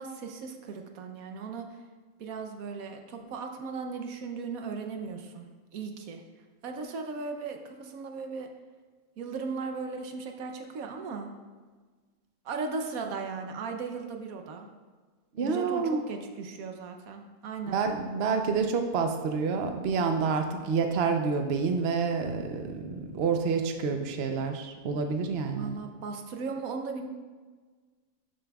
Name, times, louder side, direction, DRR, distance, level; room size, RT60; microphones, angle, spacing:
voice 1, 0.0-1.6 2.2-6.2 6.6-8.5 9.2-11.3 12.4-14.7 15.4-17.8 25.5-27.1, right 4 dB, 75° right, 4 dB, 1.2 m, -37 dB
voice 2, 15.3-16.0 17.7-25.8, right 5 dB, 55° right, 5 dB, 0.8 m, -28 dB
12.0 x 7.4 x 2.3 m, 1.4 s
omnidirectional pair, 1.5 m